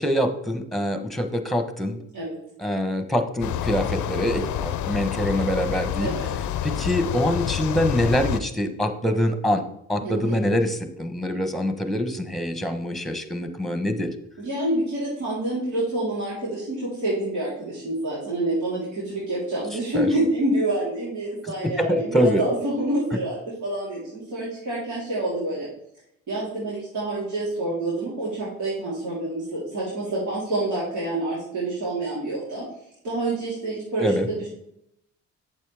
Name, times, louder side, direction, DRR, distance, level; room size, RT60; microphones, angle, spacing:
voice 1, 0.0-2.0 2.6-6.1 6.6-9.6 9.9-14.1 19.9-20.1 21.6-22.4 34.0-34.3, equal, ahead, 7 dB, 1.1 m, -24 dB
sound 1, 3.4-8.4, left 10 dB, 75° left, 0.5 m, -28 dB
voice 2, 10.0-10.4 14.4-25.7 26.3-32.6 33.0-34.5, right 1 dB, 80° right, -8 dB, 3.6 m, -27 dB
8.4 x 7.2 x 3.5 m, 0.76 s
cardioid pair, 90°, 30 cm